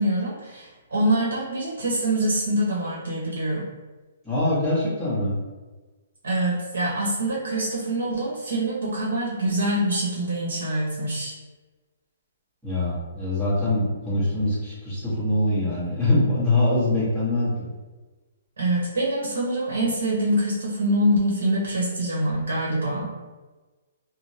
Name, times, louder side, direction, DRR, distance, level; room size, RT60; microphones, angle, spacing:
voice 1, 0.0-3.7 6.2-11.3 18.6-23.1, right 1 dB, 85° right, -5 dB, 1.0 m, -25 dB
voice 2, 4.2-5.3 12.6-17.6, left 1 dB, 5° right, -13 dB, 1.2 m, -23 dB
3.3 x 2.1 x 2.7 m, 1.3 s
hypercardioid pair, 170°, 0 cm